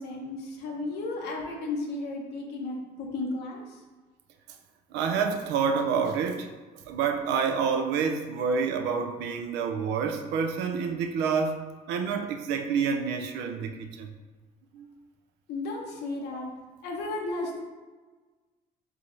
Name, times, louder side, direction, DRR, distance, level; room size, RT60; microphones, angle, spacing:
voice 1, 0.0-3.6 15.5-16.5 16.8-17.6, left 2 dB, 80° left, -1 dB, 0.8 m, -34 dB
voice 2, 4.9-6.5 6.9-11.6 11.9-14.1 14.7-14.9 16.3-16.4, right 6 dB, 90° right, 5 dB, 0.4 m, -28 dB
3.4 x 3.2 x 3.8 m, 1.3 s
cardioid pair, 110°, 17 cm